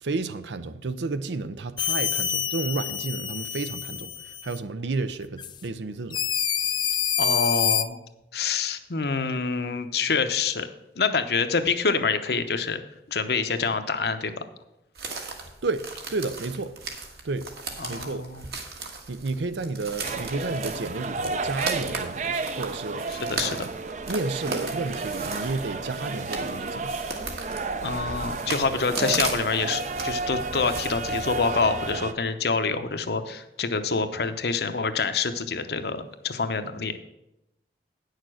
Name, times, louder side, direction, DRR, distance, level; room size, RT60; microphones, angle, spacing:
voice 1, 0.0-6.2 15.6-15.8 16.1-16.8 17.2-17.5 17.9-18.2 19.1-23.0 23.4-23.7 24.1-27.0, right 3 dB, 85° right, 0.6 m, -31 dB
sound 1, 1.8-4.6 5.4-5.5 6.1-7.8, left 8 dB, 25° left, 0.3 m, -27 dB
voice 2, 7.2-8.0 8.3-10.7 11.0-12.8 13.1-14.5 17.8-18.4 23.1-23.7 27.8-37.0, left 4 dB, 65° left, 0.8 m, -26 dB
sound 2, 15.0-31.9, right 4 dB, 60° right, 1.6 m, -37 dB
sound 3, 20.0-32.1, right 3 dB, 40° right, 0.5 m, -32 dB
9.4 x 6.6 x 6.3 m
head